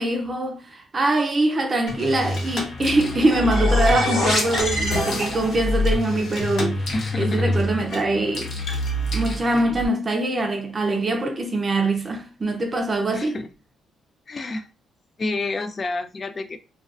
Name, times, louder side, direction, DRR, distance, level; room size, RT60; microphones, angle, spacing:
voice 1, 0.0-8.5 9.1-13.4, right 2 dB, 30° right, 0.5 m, -23 dB
sound 1, 1.9-9.9, left 2 dB, 60° left, 0.7 m, -27 dB
sound 2, 2.8-5.8, left 1 dB, 90° left, 1.2 m, -27 dB
voice 2, 6.9-7.6 13.1-13.5 14.3-14.7 15.2-16.6, left 2 dB, 35° left, 0.3 m, -29 dB
2.3 x 2.3 x 2.4 m
cardioid pair, 90°, 0 cm